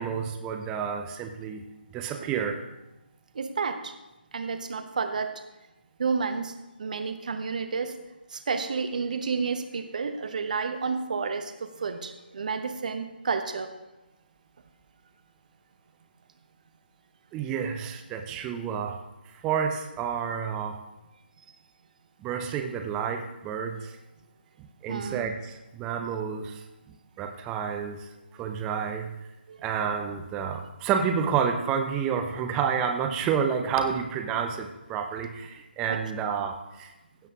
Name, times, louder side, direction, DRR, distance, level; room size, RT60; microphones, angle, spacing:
voice 1, 0.0-1.6 1.9-2.6 17.3-19.0 19.4-20.8 22.2-23.9 24.8-26.6 27.2-28.1 28.4-29.2 29.6-36.9, right 7 dB, 10° right, 5 dB, 0.7 m, -29 dB
voice 2, 3.3-3.9 4.3-5.4 6.0-7.9 8.3-13.7 24.9-25.3 29.5-29.6 35.9-36.0, right 5 dB, 45° right, 8 dB, 1.1 m, -30 dB
16.0 x 6.6 x 3.7 m, 0.99 s
figure-of-eight pair, 150°, 6 cm